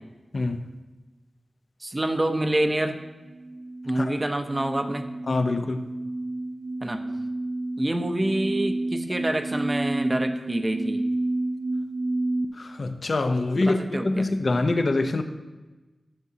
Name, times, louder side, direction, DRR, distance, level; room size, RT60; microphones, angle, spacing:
voice 1, 0.3-0.6 4.0-4.1 5.3-5.9 12.5-15.2, left 2 dB, 55° left, 7 dB, 0.7 m, -25 dB
voice 2, 1.8-3.0 3.8-5.0 6.8-7.0 7.8-11.0 13.5-14.3, right 1 dB, 25° right, 7 dB, 0.7 m, -27 dB
sound 1, 3.0-12.4, right 2 dB, 85° right, 0.4 m, -30 dB
13.5 x 7.3 x 2.8 m, 1.2 s
wide cardioid pair, 100°, 0 cm